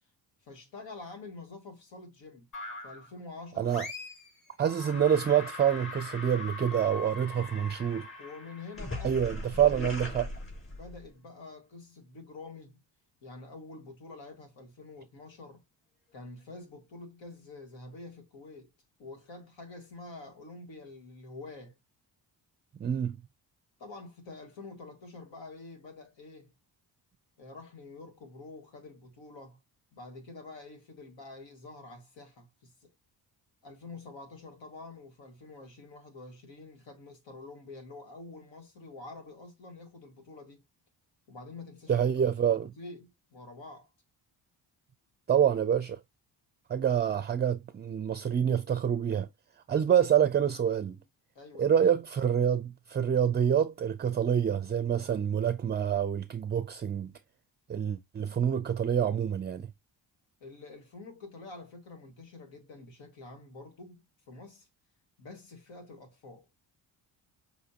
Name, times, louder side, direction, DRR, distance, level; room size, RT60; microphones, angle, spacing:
voice 1, 0.4-2.5 2.8-3.7 8.2-9.8 10.7-12.8 13.2-15.6 16.1-18.7 19.0-21.8 23.8-26.5 27.4-29.6 29.9-32.9 33.6-40.6 41.3-42.1 42.4-43.9 51.4-51.8 60.4-64.7 65.2-66.5, left 3 dB, 90° left, 1.8 m, -47 dB
sound 1, 2.5-3.1 3.7-4.3 4.6-11.1, left 2 dB, 30° left, 3.7 m, -41 dB
voice 2, 4.6-8.1 9.0-10.3 22.8-23.2 41.9-42.7 45.3-46.0 46.7-49.3 49.7-51.0 51.6-57.1 57.7-59.7, right 9 dB, 25° right, 0.4 m, -27 dB
6.3 x 2.7 x 2.8 m
cardioid pair, 85°, 44 cm